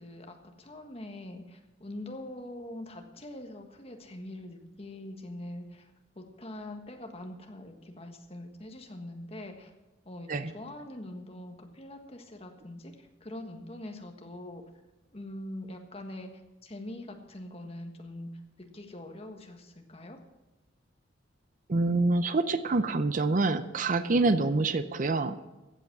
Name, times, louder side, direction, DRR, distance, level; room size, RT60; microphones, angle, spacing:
voice 1, 0.0-5.9 6.1-9.7 10.0-12.9 13.2-14.6 15.1-16.3 16.6-18.3 18.7-20.2, left 1 dB, 30° left, 4 dB, 1.5 m, -43 dB
voice 2, 21.7-25.4, right 3 dB, 45° right, 12 dB, 0.6 m, -26 dB
15.0 x 8.1 x 6.0 m, 1.1 s
head